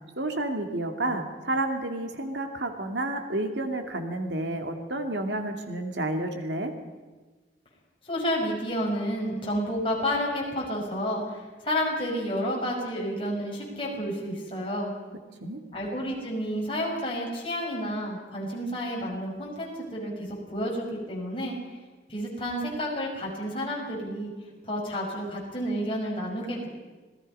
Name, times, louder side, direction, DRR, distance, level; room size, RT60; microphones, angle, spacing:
voice 1, 0.2-6.7 15.4-15.6, right 1 dB, 80° right, 5 dB, 2.3 m, -30 dB
voice 2, 8.0-14.9 15.7-20.1 20.5-21.6 22.1-24.3 24.6-26.7, equal, 30° left, -2 dB, 5.6 m, -30 dB
26.5 x 19.0 x 5.5 m, 1.3 s
head